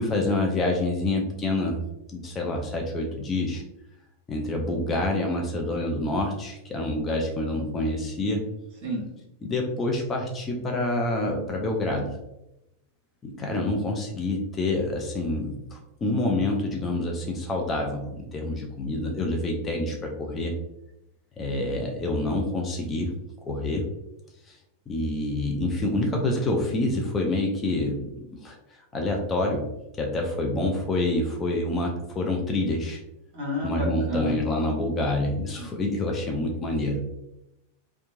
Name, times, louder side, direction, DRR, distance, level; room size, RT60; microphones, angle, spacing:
voice 1, 0.0-1.8 2.1-3.6 4.3-8.4 9.4-12.2 13.2-20.5 21.4-23.1 23.4-23.8 24.5-24.6 24.9-28.1 28.4-28.6 28.9-29.7 30.0-33.0 33.6-37.0, left 2 dB, 20° left, 1 dB, 0.5 m, -27 dB
voice 2, 33.3-34.4 35.6-35.7, equal, 45° right, -3 dB, 1.1 m, -30 dB
2.8 x 2.2 x 2.6 m, 0.87 s
figure-of-eight pair, 90°, 0 cm